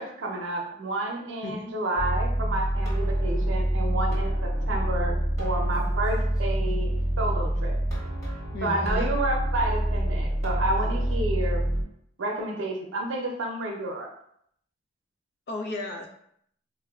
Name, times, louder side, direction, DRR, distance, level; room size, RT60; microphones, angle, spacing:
voice 1, 0.0-6.9 7.2-7.8 8.6-11.6 12.2-14.1, right 2 dB, 75° right, 1 dB, 0.6 m, -30 dB
voice 2, 1.4-1.8 8.5-9.1 15.5-16.1, left 2 dB, 55° left, 2 dB, 0.5 m, -34 dB
sound 1, 2.0-11.8, right 1 dB, 20° left, 1.1 m, -26 dB
4.0 x 2.1 x 2.3 m, 0.69 s
head